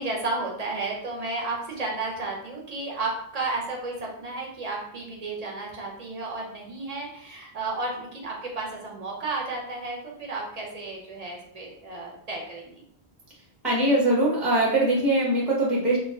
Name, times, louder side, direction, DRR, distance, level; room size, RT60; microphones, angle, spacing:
voice 1, 0.0-12.8, right 3 dB, 45° right, -2 dB, 0.6 m, -33 dB
voice 2, 13.6-16.0, right 1 dB, ahead, -5 dB, 0.6 m, -22 dB
2.3 x 2.1 x 3.5 m, 0.68 s
omnidirectional pair, 1.1 m